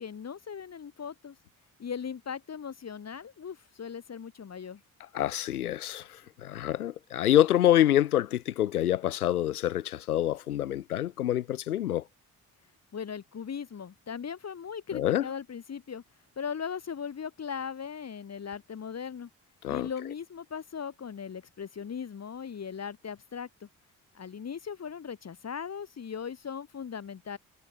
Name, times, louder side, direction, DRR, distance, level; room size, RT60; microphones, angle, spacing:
voice 1, 0.0-1.4 1.8-4.8 12.9-16.0 16.4-19.3 19.7-23.7 24.1-27.4, left 7 dB, 35° left, 2.4 m, -38 dB
voice 2, 5.1-12.0 14.9-15.3 19.6-19.9, left 12 dB, 85° left, 0.6 m, -26 dB
figure-of-eight pair, 45°, 44 cm